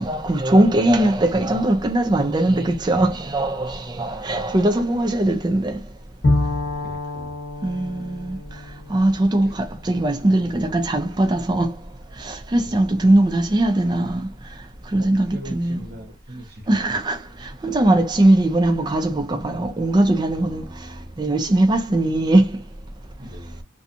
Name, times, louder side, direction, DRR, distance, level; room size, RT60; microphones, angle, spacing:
voice 1, 0.0-5.8 7.6-8.4 8.9-11.8 12.2-14.3 14.9-15.8 16.7-20.6 21.2-22.6, right 1 dB, 25° right, 0.4 m, -20 dB
Bowed string instrument, 6.2-10.0, left 2 dB, 65° left, 0.9 m, -27 dB
voice 2, 6.8-7.4 9.4-9.5 12.5-12.9 15.0-16.7 17.7-18.0 20.4-21.2 23.2-23.6, equal, 55° right, 0.8 m, -40 dB
2.7 x 2.3 x 2.5 m
head